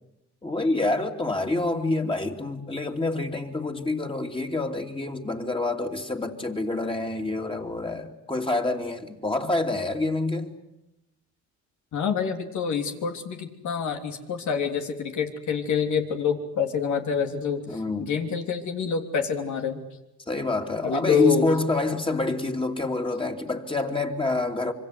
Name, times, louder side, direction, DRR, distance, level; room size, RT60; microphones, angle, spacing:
voice 1, 0.4-10.5 17.7-18.1 20.3-24.7, left 2 dB, 15° left, 3 dB, 3.0 m, -27 dB
voice 2, 11.9-19.8 20.8-21.5, left 6 dB, 75° left, 4 dB, 3.4 m, -27 dB
26.0 x 24.0 x 8.2 m, 0.88 s
cardioid pair, 90°, 30 cm